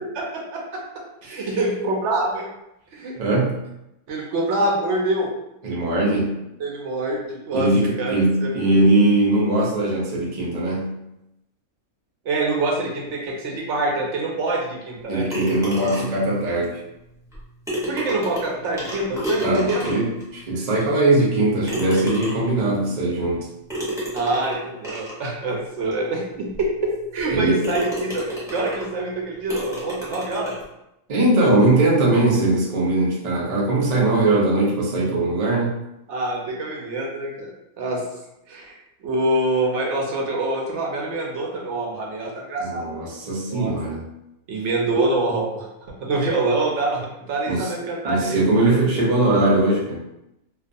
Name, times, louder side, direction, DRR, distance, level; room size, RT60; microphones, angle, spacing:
voice 1, 0.1-0.8 1.3-2.5 2.9-3.1 4.1-5.3 6.6-7.7 8.0-8.5 12.2-15.2 17.8-20.0 24.1-26.7 27.1-30.5 36.1-37.5 37.8-38.0 38.5-43.1 43.5-43.7 44.5-45.7 46.0-48.7, right 2 dB, 65° right, -1 dB, 0.7 m, -25 dB
voice 2, 3.2-3.6 5.6-6.4 7.5-10.9 15.1-16.8 19.4-23.5 27.3-27.7 31.1-35.7 42.6-44.1 47.5-47.7 48.0-50.0, right 2 dB, 85° right, -4 dB, 0.3 m, -20 dB
sound 1, 15.3-16.3 17.3-17.4 17.7-20.2 20.8-20.9 21.6-22.6 23.7-25.2 25.9-26.0 26.5-26.6 27.1-27.3 27.6-28.9 29.5-30.6, equal, 5° right, 0.4 m, -30 dB
2.4 x 2.3 x 2.5 m, 0.87 s
omnidirectional pair, 1.6 m